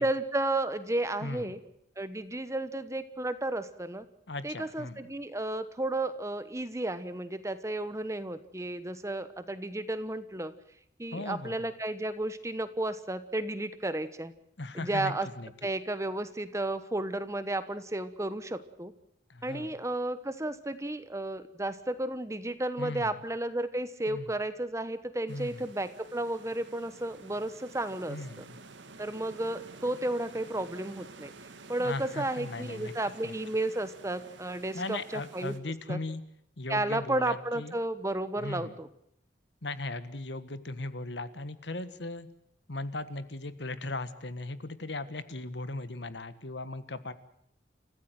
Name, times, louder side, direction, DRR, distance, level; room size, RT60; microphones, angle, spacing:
voice 1, 0.0-1.6 2.0-4.1 4.4-10.5 11.0-14.3 14.7-15.3 15.6-18.9 19.4-28.5 29.0-31.3 31.7-35.5 35.9-36.0 36.7-38.9, right 1 dB, 15° right, 12 dB, 1.1 m, -33 dB
voice 2, 1.2-1.5 4.3-5.1 11.1-11.7 14.6-15.5 19.3-19.7 22.8-23.1 24.1-24.3 25.3-25.7 28.1-28.6 31.8-32.9 33.2-33.3 34.7-36.2 36.6-37.8 38.4-38.7 39.6-42.3 42.7-47.1, left 2 dB, 65° left, 13 dB, 1.5 m, -38 dB
sound 1, 25.3-35.6, right 3 dB, 75° right, 2.0 m, -51 dB
29.5 x 15.0 x 7.8 m, 0.74 s
head